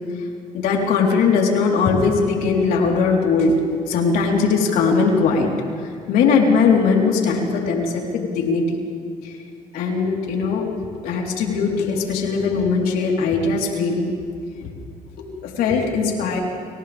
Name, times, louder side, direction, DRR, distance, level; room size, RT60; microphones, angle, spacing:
voice 1, 0.5-5.5 5.8-8.8 9.2-9.4 9.7-14.1 14.6-14.7 15.2-16.4, left 4 dB, 85° left, -1 dB, 4.3 m, -20 dB
30.0 x 27.5 x 3.7 m, 2.4 s
supercardioid pair, 75°, 15 cm